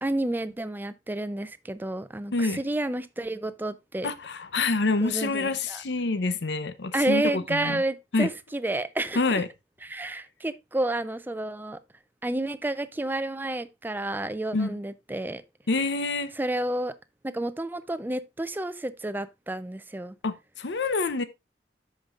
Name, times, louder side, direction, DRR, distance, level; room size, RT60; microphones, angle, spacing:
voice 1, 0.0-4.1 5.0-5.8 6.9-9.2 9.9-11.8 12.2-15.4 16.4-16.9 17.2-20.1, right 1 dB, 10° right, 0.4 m, -30 dB
voice 2, 4.0-7.8 8.1-8.3 9.1-9.5 14.5-14.8 15.7-16.3 20.2-21.2, left 3 dB, 80° left, 0.7 m, -27 dB
13.5 x 5.2 x 2.4 m
head